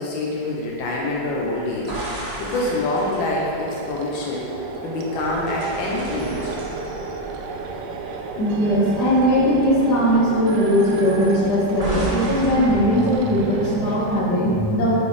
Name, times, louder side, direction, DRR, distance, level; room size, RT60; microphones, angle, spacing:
voice 1, 0.0-6.6, left 2 dB, 90° left, -3 dB, 1.6 m, -26 dB
sound 1, 0.6-14.2, right 4 dB, 70° right, 1.0 m, -33 dB
sound 2, 1.9-4.6 5.1-8.5 8.8-9.1 11.8-13.4, right 1 dB, 35° right, 0.6 m, -34 dB
voice 2, 8.4-14.9, equal, 60° left, -6 dB, 1.9 m, -19 dB
8.2 x 4.7 x 3.3 m, 2.8 s
omnidirectional pair, 2.1 m